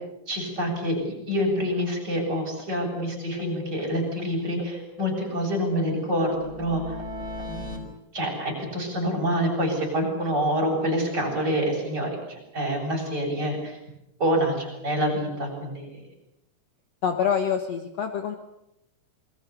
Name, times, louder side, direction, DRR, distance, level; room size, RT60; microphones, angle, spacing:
voice 1, 0.3-7.0 7.5-7.9 8.1-13.8 14.2-16.0, equal, 30° right, 0 dB, 8.1 m, -27 dB
sound 1, 1.4-1.5 1.8-1.9 2.2-2.3 2.6-2.7 3.0-4.3 4.6-7.8, left 1 dB, 25° left, 5.0 m, -39 dB
voice 2, 17.0-18.4, left 7 dB, 60° left, 6 dB, 2.1 m, -26 dB
28.0 x 22.0 x 7.0 m, 0.87 s
omnidirectional pair, 3.9 m